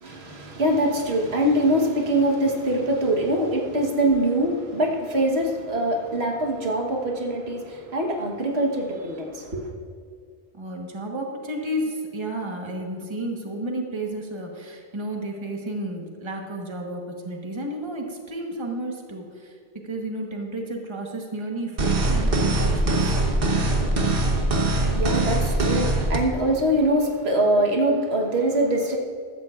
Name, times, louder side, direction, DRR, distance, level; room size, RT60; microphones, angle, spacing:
voice 1, 0.0-9.7 24.8-29.0, right 1 dB, 80° right, 1 dB, 1.5 m, -23 dB
voice 2, 10.5-19.6 19.8-23.1, right 1 dB, 30° right, 1 dB, 1.3 m, -32 dB
sound 1, 21.8-26.2, right 2 dB, 60° right, 1.4 m, -22 dB
15.0 x 13.0 x 2.4 m, 2.3 s
omnidirectional pair, 1.1 m